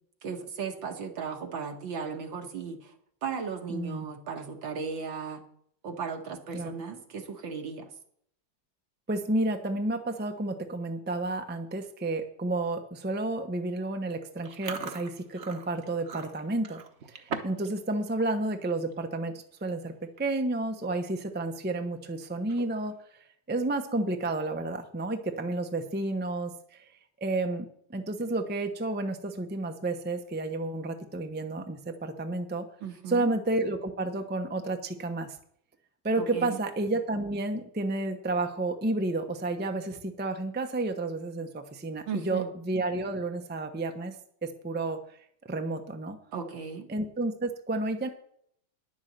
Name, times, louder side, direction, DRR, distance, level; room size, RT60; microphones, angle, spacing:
voice 1, 0.2-2.9 3.2-5.4 5.8-7.9 32.8-33.3 36.2-36.6 42.1-42.5 46.3-46.9, right 6 dB, 80° right, 4 dB, 2.3 m, -36 dB
voice 2, 3.7-4.1 6.5-6.7 9.1-16.8 17.1-22.9 23.5-26.8 27.2-32.6 33.1-35.4 36.0-44.2 44.4-45.0 45.5-46.2 46.9-48.1, right 2 dB, 10° right, 5 dB, 0.5 m, -31 dB
Chewing mastication, 14.4-17.7 18.0-18.3 18.7-19.0 19.7-19.8 20.0-20.4 20.8-20.9 22.3-22.9, right 5 dB, 45° right, 1.1 m, -40 dB
10.5 x 7.3 x 7.4 m, 0.67 s
omnidirectional pair, 2.1 m